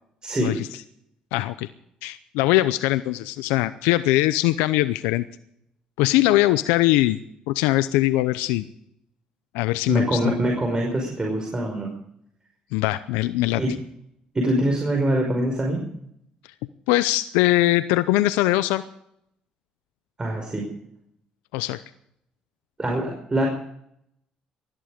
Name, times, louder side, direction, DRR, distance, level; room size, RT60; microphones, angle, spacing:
voice 1, 1.3-1.7 2.0-5.3 6.0-7.2 7.5-8.6 9.5-10.3 12.7-13.6 16.9-18.8 21.5-21.8, left 16 dB, 85° left, 14 dB, 0.6 m, -21 dB
voice 2, 9.9-11.9 13.6-13.7 14.3-15.8 20.2-20.6 22.8-23.5, right 1 dB, 25° right, 1 dB, 5.5 m, -24 dB
20.0 x 14.0 x 5.1 m, 0.75 s
supercardioid pair, 60°, 3 cm